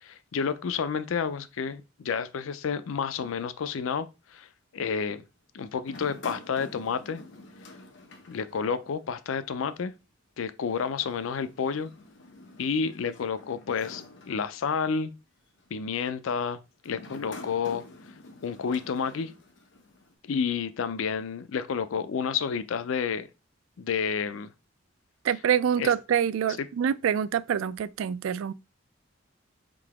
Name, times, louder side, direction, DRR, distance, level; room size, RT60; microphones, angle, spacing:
voice 1, 0.0-4.5 4.7-5.2 5.5-7.2 8.3-9.9 10.4-11.9 12.6-15.1 15.7-17.8 18.4-19.3 20.2-23.3 23.8-24.5 25.8-25.9 26.6-26.7, left 6 dB, 85° left, 0.4 m, -30 dB
sound 1, 5.8-9.2 9.5-9.6 10.8-15.0 15.6-15.9 16.8-20.1, left 2 dB, 60° left, 0.9 m, -48 dB
voice 2, 25.2-28.5, right 8 dB, 85° right, 0.3 m, -26 dB
3.8 x 2.8 x 4.8 m
head